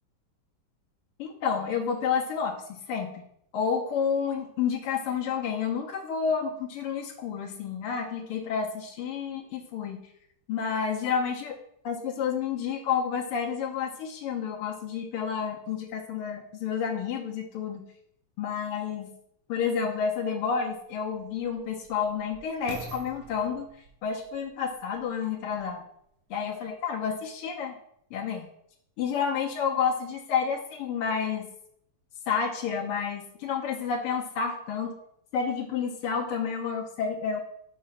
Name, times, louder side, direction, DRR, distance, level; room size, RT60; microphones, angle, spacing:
voice 1, 1.2-3.2 3.5-10.0 10.5-11.6 11.8-17.9 18.4-19.1 19.5-23.7 24.0-25.8 26.3-27.7 28.1-28.5 29.0-31.5 32.3-34.9 35.3-37.4, left 6 dB, 85° left, -1 dB, 1.7 m, -30 dB
sound 1, 19.7-19.8 20.5-25.8 26.4-26.5, right 5 dB, 70° right, 1.4 m, -48 dB
4.8 x 4.2 x 5.5 m, 0.72 s
omnidirectional pair, 2.4 m